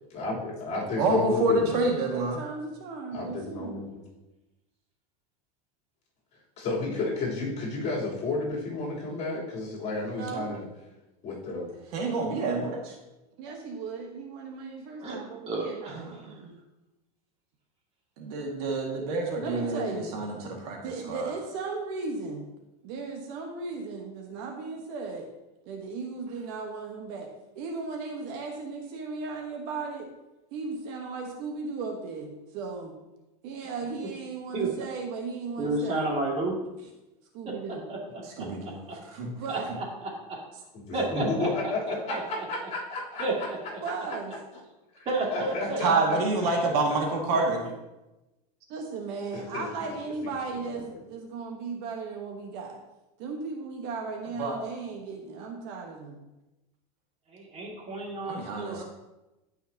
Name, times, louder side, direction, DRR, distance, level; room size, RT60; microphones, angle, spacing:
voice 1, 0.1-1.8 3.1-4.0 6.6-10.6 11.2-11.7 40.9-43.5 45.0-46.5 49.3-49.9, left 2 dB, 35° left, -5 dB, 3.5 m, -32 dB
voice 2, 1.0-2.4 11.9-13.0 16.0-16.1 18.2-20.8 21.1-21.3 38.4-39.3 45.8-47.6 54.4-54.6 58.3-58.8, right 2 dB, 70° right, 1 dB, 2.0 m, -27 dB
voice 3, 2.1-3.7 10.2-10.5 13.4-16.0 16.2-16.6 19.4-20.1 20.8-22.4 22.8-25.3 25.6-27.3 27.5-30.1 30.5-33.0 33.4-36.0 37.3-37.9 39.4-39.7 43.8-44.4 48.7-52.8 53.2-56.2, right 4 dB, 55° right, 2 dB, 1.3 m, -36 dB
voice 4, 15.5-16.4 34.5-34.7 35.6-36.6 37.4-37.5 37.9-38.0 38.4-38.5 38.9-39.0 39.5-39.8 40.3-40.4 40.9-42.5 43.2-43.6 45.1-45.8 47.3-47.5 57.3-58.8, right 2 dB, 30° right, -2 dB, 2.4 m, -31 dB
15.5 x 5.7 x 2.9 m, 1.0 s
supercardioid pair, 135°, 20 cm